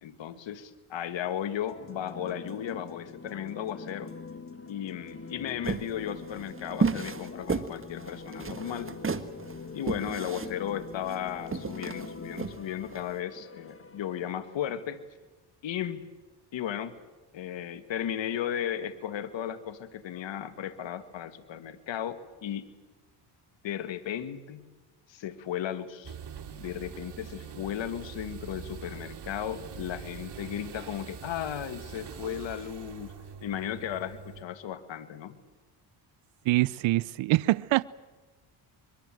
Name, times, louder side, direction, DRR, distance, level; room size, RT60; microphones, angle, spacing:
voice 1, 0.0-4.1 4.7-8.9 9.7-15.0 15.6-16.0 16.5-16.9 17.3-22.7 23.6-24.7 25.1-26.2 26.6-35.4, left 10 dB, 65° left, 2.0 m, -35 dB
sound 1, 1.7-14.3, left 4 dB, 25° left, 1.8 m, -44 dB
sound 2, 5.6-13.1, right 5 dB, 25° right, 1.5 m, -33 dB
sound 3, 26.0-34.4, right 7 dB, 55° right, 2.6 m, -43 dB
voice 2, 36.5-37.8, right 19 dB, 70° right, 0.7 m, -24 dB
24.0 x 22.5 x 7.6 m
supercardioid pair, 70°, 48 cm